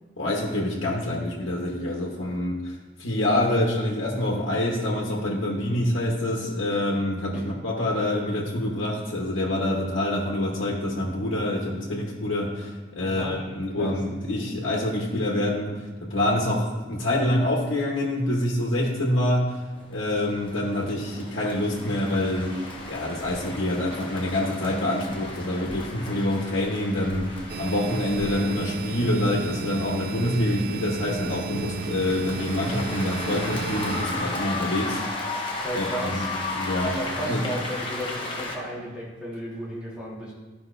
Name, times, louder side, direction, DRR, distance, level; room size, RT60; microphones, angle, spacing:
voice 1, 0.2-35.4 35.7-37.4, left 1 dB, 90° left, -3 dB, 1.2 m, -26 dB
voice 2, 13.0-13.4 13.8-14.0 35.6-36.3 36.9-40.3, equal, 5° right, -6 dB, 1.6 m, -34 dB
sound 1, 19.8-38.5, left 2 dB, 25° left, 1.1 m, -35 dB
sound 2, 27.5-34.1, right 4 dB, 55° right, 0.3 m, -34 dB
13.0 x 5.4 x 2.6 m, 1.3 s
head